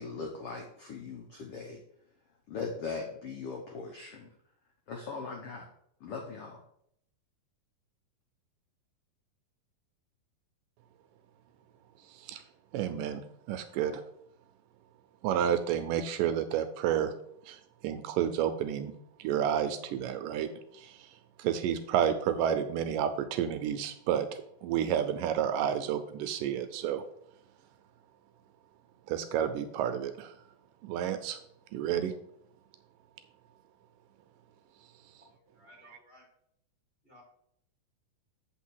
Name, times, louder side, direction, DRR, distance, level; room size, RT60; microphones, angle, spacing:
voice 1, 0.0-1.8 2.5-4.3 4.9-5.7 6.0-6.6, left 4 dB, 80° left, 1 dB, 1.3 m, -39 dB
voice 2, 12.1-12.4 12.7-13.2 13.5-14.0 15.2-17.1 17.5-18.9 19.2-24.3 24.6-27.0 29.1-30.4 30.8-31.4 31.7-32.1, right 9 dB, 80° right, 8 dB, 2.1 m, -30 dB
voice 3, 35.6-36.2 37.0-37.2, equal, 25° left, -3 dB, 1.4 m, -56 dB
7.8 x 4.1 x 6.3 m, 0.70 s
omnidirectional pair, 4.1 m